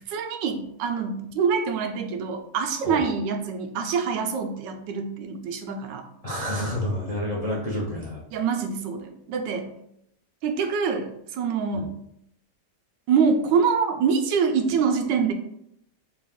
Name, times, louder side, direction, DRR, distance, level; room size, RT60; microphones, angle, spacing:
voice 1, 0.1-6.1 8.3-9.7 10.4-11.9 13.1-15.3, right 6 dB, 85° right, 5 dB, 1.2 m, -25 dB
voice 2, 6.2-8.2 11.7-11.9, left 1 dB, 80° left, -5 dB, 0.3 m, -29 dB
4.1 x 2.3 x 3.5 m, 0.73 s
omnidirectional pair, 1.9 m